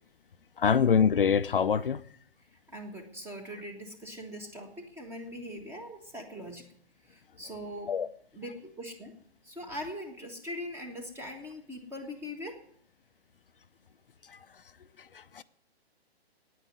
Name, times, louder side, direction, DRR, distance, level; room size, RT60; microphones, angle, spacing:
voice 1, 0.6-2.0 7.9-8.1 14.3-14.4 15.0-15.4, left 7 dB, 55° left, 0.6 m, -25 dB
voice 2, 2.7-6.6 7.1-7.9 8.3-9.1 9.4-12.6, equal, 5° right, 1.4 m, -41 dB
9.5 x 8.9 x 9.4 m
figure-of-eight pair, 130°, 32 cm